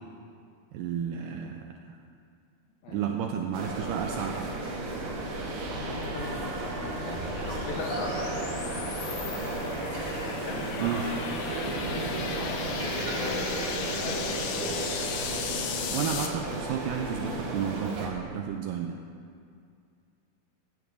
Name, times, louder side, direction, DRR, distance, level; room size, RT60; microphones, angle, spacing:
voice 1, 0.7-1.7 2.9-4.5 10.8-11.1 15.9-19.0, right 8 dB, 85° right, 3 dB, 2.0 m, -32 dB
voice 2, 2.8-3.3 5.8-8.2 8.6-9.7 10.3-11.1 12.2-14.6 14.9-15.1 15.9-16.1, left 3 dB, 70° left, -1 dB, 2.1 m, -40 dB
sound 1, 3.5-18.1, right 2 dB, 65° right, 2.6 m, -33 dB
sound 2, 4.8-16.3, left 6 dB, 85° left, 2.8 m, -38 dB
15.5 x 12.0 x 2.6 m, 2.3 s
omnidirectional pair, 4.3 m